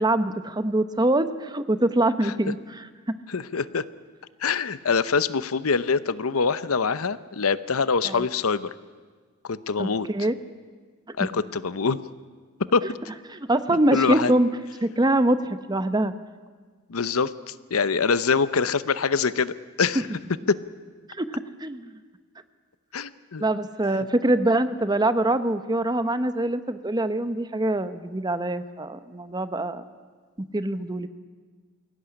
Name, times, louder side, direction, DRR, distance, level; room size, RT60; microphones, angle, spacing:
voice 1, 0.0-3.1 8.0-8.2 9.8-10.3 13.3-14.5 14.8-16.1 21.1-21.9 23.4-29.8 30.4-31.1, right 1 dB, 20° right, 12 dB, 0.9 m, -24 dB
voice 2, 3.3-3.8 4.4-8.7 9.4-10.1 11.2-12.0 12.7-13.0 13.9-14.3 16.9-20.1 20.5-20.6 22.9-23.4, left 5 dB, 75° left, 15 dB, 0.8 m, -24 dB
22.5 x 17.0 x 9.9 m, 1.5 s
head